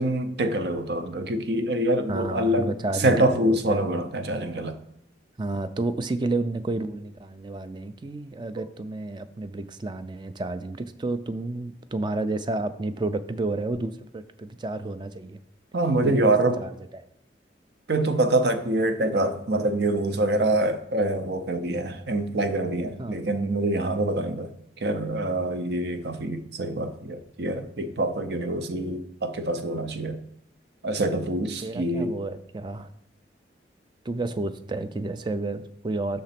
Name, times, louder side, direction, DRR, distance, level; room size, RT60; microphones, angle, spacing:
voice 1, 0.0-2.7 3.0-4.8 15.7-16.6 17.9-24.5 24.8-30.2 30.8-32.2, right 1 dB, 65° right, 0.7 m, -25 dB
voice 2, 2.1-3.9 5.4-15.4 16.0-17.1 23.0-23.2 31.6-32.9 34.1-36.2, right 2 dB, 25° right, 0.4 m, -31 dB
6.6 x 3.9 x 5.9 m
head